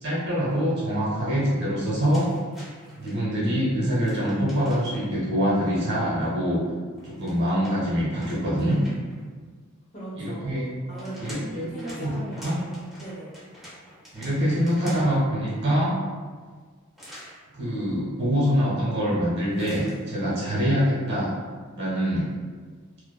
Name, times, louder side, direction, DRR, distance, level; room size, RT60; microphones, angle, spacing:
voice 1, 0.0-2.3 3.0-6.6 7.0-8.8 10.2-10.6 11.2-11.7 12.0-12.6 14.1-16.0 17.5-21.3 21.8-22.3, equal, 55° right, -7 dB, 1.0 m, -24 dB
sound 1, 2.1-3.2 4.0-5.1 6.9-9.2 10.6-15.2 17.0-17.4 19.5-20.0, equal, ahead, 0.6 m, -46 dB
voice 2, 9.9-10.6 10.9-13.3, right 1 dB, 40° left, -9 dB, 1.0 m, -39 dB
2.5 x 2.3 x 2.3 m, 1.5 s
head